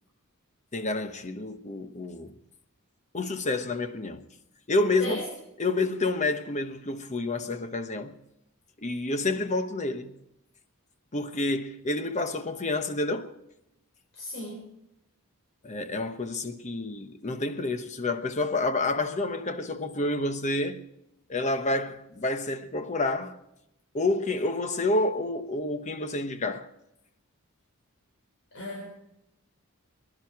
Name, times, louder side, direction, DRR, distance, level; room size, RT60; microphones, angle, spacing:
voice 1, 0.7-2.3 3.1-4.3 4.7-5.2 5.6-8.2 8.8-10.2 11.1-13.3 15.6-20.8 21.3-23.4 23.9-26.7, left 2 dB, 30° left, 0.9 m, -29 dB
voice 2, 14.1-14.6 28.5-28.9, left 2 dB, 55° left, 4.5 m, -35 dB
21.0 x 11.0 x 4.8 m
head